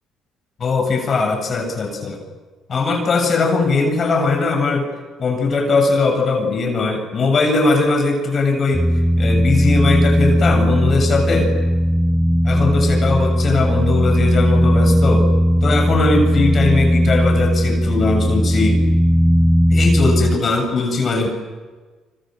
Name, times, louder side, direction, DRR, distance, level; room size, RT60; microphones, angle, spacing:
voice 1, 0.6-2.2 2.7-4.9 5.2-8.9 9.2-11.5 12.4-15.3 15.6-18.8 19.7-21.3, left 3 dB, 45° left, 4 dB, 7.1 m, -19 dB
sound 1, 8.7-20.4, equal, 5° right, 1.6 m, -16 dB
28.0 x 25.0 x 7.7 m, 1.4 s
supercardioid pair, 80°, 0 cm